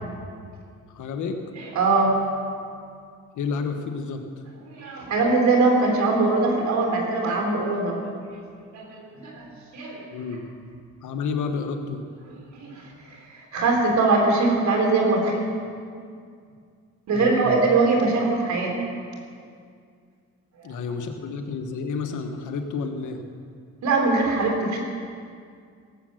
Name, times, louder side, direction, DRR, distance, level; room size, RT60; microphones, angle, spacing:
voice 1, 0.9-1.4 3.3-4.2 10.1-10.4 11.0-12.0 17.1-17.6 20.6-23.2, left 5 dB, 80° left, 5 dB, 1.5 m, -30 dB
voice 2, 1.6-2.2 4.7-8.0 8.2-8.4 8.7-9.5 9.7-10.0 12.5-15.5 17.1-18.7 20.6-20.8 23.8-24.8, right 3 dB, 65° right, 0 dB, 3.8 m, -22 dB
18.0 x 7.7 x 7.9 m, 2.2 s
cardioid pair, 90°, 30 cm